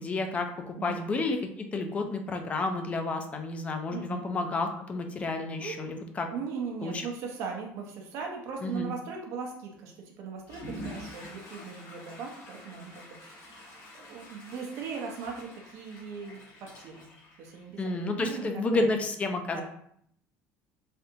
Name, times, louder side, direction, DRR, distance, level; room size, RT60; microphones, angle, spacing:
voice 1, 0.0-6.3 6.8-7.1 8.6-8.9 17.8-19.6, left 3 dB, 25° left, 5 dB, 0.4 m, -31 dB
voice 2, 3.9-4.2 5.6-5.9 6.3-17.1 17.4-18.9 19.5-19.6, right 5 dB, 65° right, 0 dB, 0.6 m, -39 dB
Water / Toilet flush, 10.4-18.1, equal, 55° left, 1.0 m, -47 dB
3.4 x 2.5 x 2.8 m, 0.67 s
cardioid pair, 145°, 6 cm